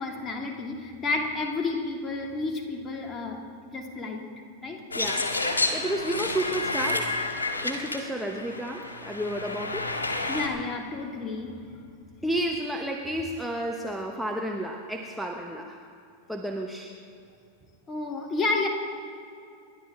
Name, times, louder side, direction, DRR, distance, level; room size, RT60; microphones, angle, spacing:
voice 1, 0.0-3.4 3.7-4.2 4.6-5.1 5.9-6.0 10.3-11.8 17.9-18.7, left 3 dB, 25° left, 1 dB, 2.6 m, -31 dB
sound 1, 4.9-10.5, left 2 dB, 75° left, 1.9 m, -30 dB
voice 2, 4.9-5.5 5.7-7.2 7.6-9.9 12.2-15.8 16.3-16.9, right 1 dB, ahead, 1 dB, 1.2 m, -31 dB
29.0 x 11.5 x 3.7 m, 2.5 s
figure-of-eight pair, 90°, 0 cm